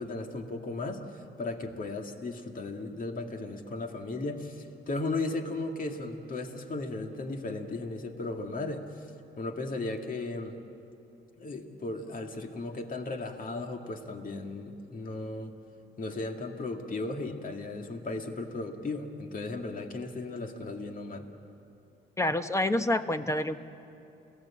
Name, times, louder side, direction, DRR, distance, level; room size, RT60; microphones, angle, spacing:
voice 1, 0.0-9.1 9.4-10.6 11.4-15.5 16.0-21.3, left 2 dB, 45° left, 4 dB, 2.2 m, -36 dB
voice 2, 22.2-23.6, left 1 dB, 15° left, 10 dB, 1.0 m, -27 dB
30.0 x 17.5 x 8.6 m, 2.8 s
cardioid pair, 90°, 20 cm